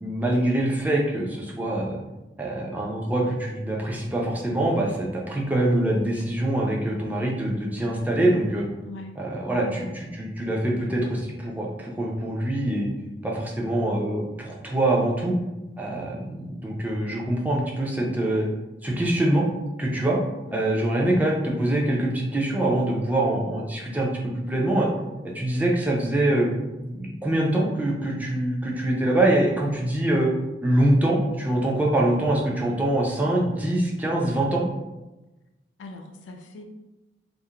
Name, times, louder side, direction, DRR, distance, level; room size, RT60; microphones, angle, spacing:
voice 1, 0.0-2.0 2.4-8.7 9.2-12.9 13.2-15.4 15.8-18.5 18.8-19.5 19.8-20.2 20.5-24.9 25.2-26.5 26.8-30.3 30.6-34.7, right 1 dB, 10° right, -3 dB, 0.3 m, -24 dB
voice 2, 8.8-9.2 19.9-20.2 20.5-20.7 35.8-36.6, left 3 dB, 90° left, 3 dB, 0.4 m, -41 dB
2.4 x 2.0 x 2.7 m, 1.0 s
head